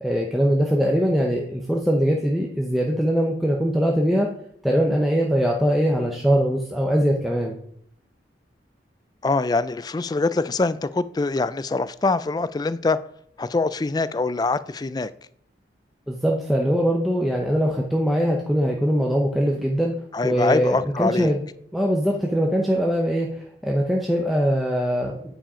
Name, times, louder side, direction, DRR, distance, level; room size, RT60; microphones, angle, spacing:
voice 1, 0.0-4.3 4.6-7.6 16.1-19.9 20.2-21.4 21.7-25.1, equal, ahead, 0.7 m, -22 dB
voice 2, 9.2-13.0 13.4-15.1 20.1-21.3, left 3 dB, 20° left, 0.3 m, -24 dB
8.9 x 4.9 x 4.9 m
head